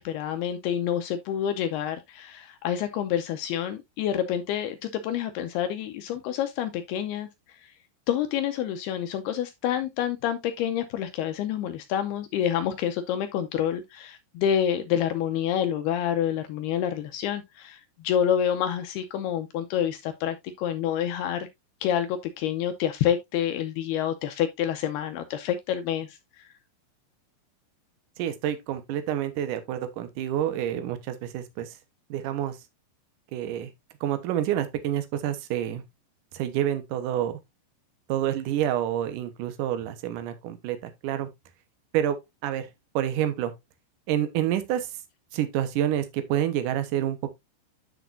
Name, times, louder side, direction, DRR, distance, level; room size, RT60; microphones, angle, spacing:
voice 1, 0.0-7.3 7.6-7.7 8.1-21.5 21.8-26.5, left 9 dB, 85° left, 2.3 m, -28 dB
voice 2, 28.2-31.8 32.1-32.6 33.3-33.7 34.0-35.8 36.3-37.4 38.1-41.3 41.9-42.2 42.4-42.7 43.0-43.5 44.1-44.9 45.3-47.3, right 11 dB, 75° right, 1.9 m, -28 dB
10.0 x 6.2 x 2.6 m
omnidirectional pair, 5.2 m